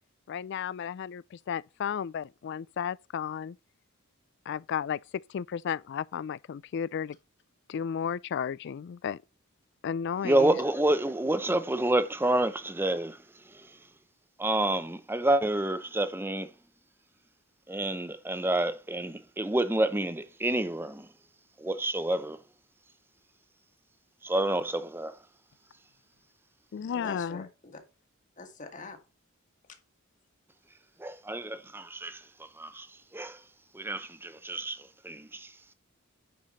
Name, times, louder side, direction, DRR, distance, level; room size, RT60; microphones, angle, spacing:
voice 1, 0.3-3.6 4.5-7.2 7.7-9.2 9.8-10.6 26.7-27.5, left 7 dB, 55° left, 0.3 m, -33 dB
voice 2, 10.2-13.2 13.5-13.7 14.4-16.5 17.7-21.1 21.6-22.4 24.2-25.2 31.0-32.2 32.6-32.9 33.1-33.4 33.7-35.5, right 1 dB, 10° right, 0.7 m, -28 dB
voice 3, 26.9-27.8 28.4-29.0, left 3 dB, 40° left, 1.8 m, -43 dB
9.4 x 5.0 x 4.1 m
head